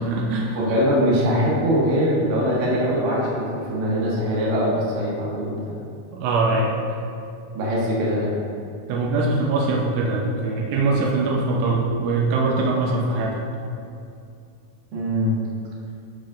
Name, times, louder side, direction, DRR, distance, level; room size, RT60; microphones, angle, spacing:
voice 1, 0.0-0.6 6.1-6.7 8.9-13.4, right 3 dB, 90° right, -1 dB, 3.2 m, -22 dB
voice 2, 0.6-5.6 7.5-8.3 14.9-15.4, equal, 70° right, -6 dB, 3.4 m, -22 dB
14.5 x 5.1 x 2.5 m, 2.5 s
omnidirectional pair, 5.3 m